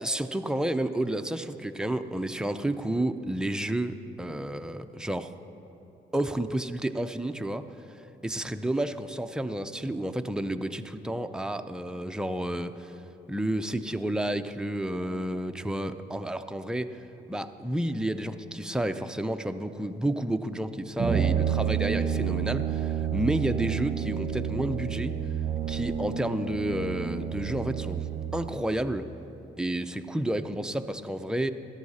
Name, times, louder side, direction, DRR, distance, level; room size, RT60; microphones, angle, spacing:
voice 1, 0.0-5.3 6.1-7.6 8.2-12.9 13.3-17.0 17.3-25.2 25.7-28.1 28.3-29.1 29.6-31.5, right 1 dB, 5° right, 8 dB, 0.5 m, -30 dB
Brass instrument, 21.0-28.5, right 8 dB, 35° right, 1.0 m, -29 dB
12.5 x 12.5 x 4.2 m, 3.0 s
cardioid pair, 90°, 20 cm